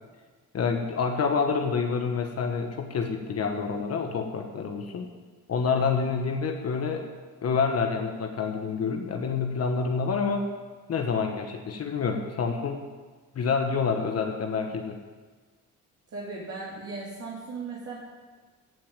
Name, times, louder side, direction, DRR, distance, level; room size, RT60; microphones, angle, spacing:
voice 1, 0.5-5.1 5.5-7.1 7.4-10.5 10.9-12.8 13.3-15.0, left 5 dB, 55° left, 4 dB, 1.4 m, -27 dB
voice 2, 16.1-18.0, right 3 dB, 55° right, -6 dB, 3.0 m, -37 dB
15.0 x 5.7 x 9.1 m, 1.4 s
cardioid pair, 90°, 30 cm